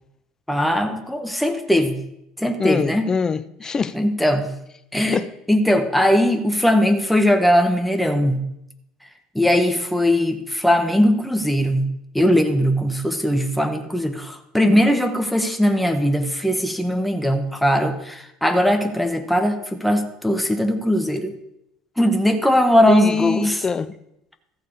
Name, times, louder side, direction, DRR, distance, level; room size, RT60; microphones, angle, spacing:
voice 1, 0.5-2.0 2.4-3.1 3.9-4.5 4.9-5.2 5.5-8.4 9.3-11.9 12.1-21.3 22.0-23.6, equal, ahead, 1.3 m, -19 dB
voice 2, 2.6-3.9 5.1-5.3 22.9-23.9, left 5 dB, 30° left, 0.7 m, -23 dB
14.0 x 7.0 x 4.9 m
hypercardioid pair, 80°, 2 cm